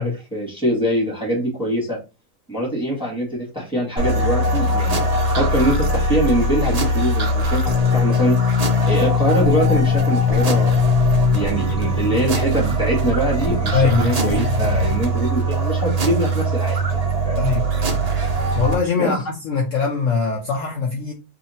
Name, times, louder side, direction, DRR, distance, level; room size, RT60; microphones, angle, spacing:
voice 1, 0.0-2.0 2.5-8.6 8.8-10.8 11.3-17.4 19.0-19.1, right 1 dB, 5° right, 1.3 m, -23 dB
sound 1, 4.0-18.7, left 1 dB, 65° right, 0.4 m, -20 dB
sound 2, 7.4-8.4 9.4-10.4 10.9-11.0 11.4-12.4 13.4-14.4, left 1 dB, 90° left, 0.4 m, -33 dB
voice 2, 13.7-14.1 17.4-18.0 18.6-21.1, left 5 dB, 60° left, 0.9 m, -22 dB
2.8 x 2.8 x 4.0 m
omnidirectional pair, 1.7 m